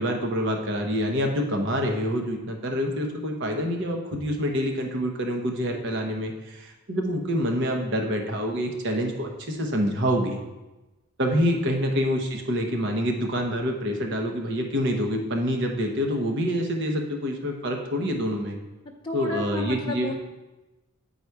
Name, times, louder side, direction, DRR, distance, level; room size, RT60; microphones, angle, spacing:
voice 1, 0.0-10.4 11.2-18.6 19.1-20.1, equal, 55° right, 2 dB, 1.0 m, -26 dB
voice 2, 19.0-20.1, left 2 dB, 25° left, -4 dB, 0.7 m, -32 dB
9.6 x 4.1 x 4.6 m, 1.1 s
head